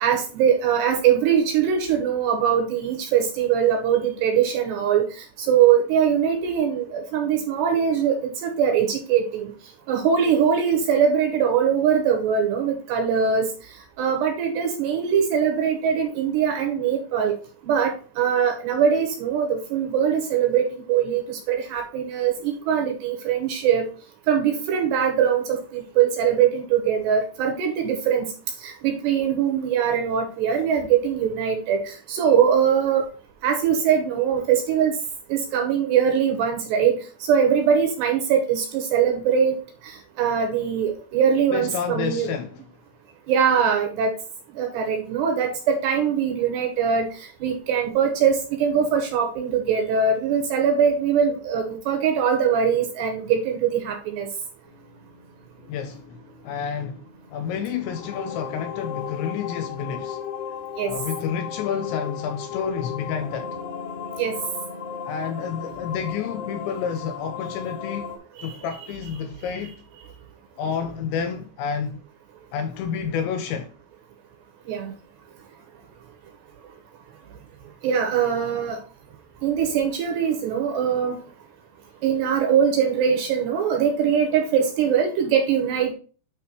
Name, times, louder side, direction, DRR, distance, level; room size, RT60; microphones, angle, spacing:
voice 1, 0.0-9.5 9.9-13.5 14.0-17.3 17.6-23.8 24.3-28.3 28.6-33.0 33.4-34.9 35.3-37.0 37.3-39.6 39.8-42.3 43.3-44.1 44.6-47.1 47.4-54.3 60.8-60.9 64.2-64.3 68.4-68.5 74.7-74.9 77.8-78.8 79.4-81.2 82.0-85.9, right 7 dB, 75° right, 2.8 m, -22 dB
voice 2, 41.5-42.6 55.7-57.0 57.3-60.2 60.8-63.6 65.0-68.1 68.4-69.8 70.6-72.0 72.5-73.7, left 7 dB, 85° left, 2.7 m, -30 dB
sound 1, 54.7-68.2, left 7 dB, 65° left, 3.0 m, -35 dB
9.7 x 3.3 x 4.5 m
omnidirectional pair, 5.7 m